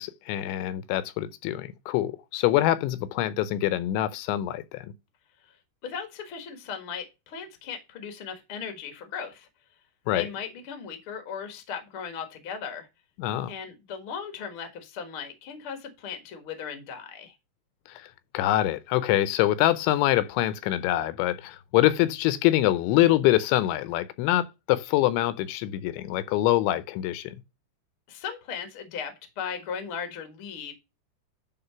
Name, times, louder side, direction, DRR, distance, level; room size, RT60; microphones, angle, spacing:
voice 1, 0.0-4.9 10.1-10.3 13.2-13.5 18.0-18.1 18.3-27.4, left 14 dB, 90° left, 3.0 m, -25 dB
voice 2, 5.8-9.5 10.1-12.9 13.5-17.3 28.1-30.7, left 7 dB, 70° left, 1.2 m, -37 dB
10.5 x 3.8 x 5.7 m
omnidirectional pair, 5.2 m